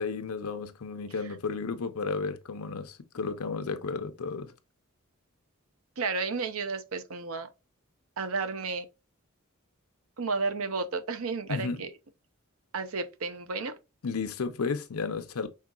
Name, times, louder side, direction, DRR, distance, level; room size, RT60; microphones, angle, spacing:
voice 1, 0.0-4.5 11.5-11.8 14.0-15.5, left 4 dB, 90° left, 0.7 m, -33 dB
voice 2, 6.0-7.5 8.2-8.9 10.2-11.9 12.7-13.8, right 4 dB, 75° right, 0.7 m, -32 dB
5.6 x 3.7 x 2.4 m
head